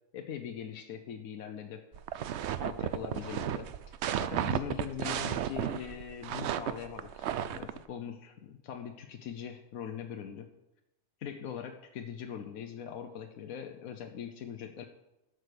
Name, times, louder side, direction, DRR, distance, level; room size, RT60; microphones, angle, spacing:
voice 1, 0.1-1.8 2.6-3.7 4.2-10.5 11.2-14.8, left 8 dB, 85° left, 5 dB, 1.2 m, -41 dB
sound 1, 1.9-7.8, right 10 dB, 65° right, 0.8 m, -34 dB
11.5 x 6.3 x 6.7 m, 0.98 s
omnidirectional pair, 1.4 m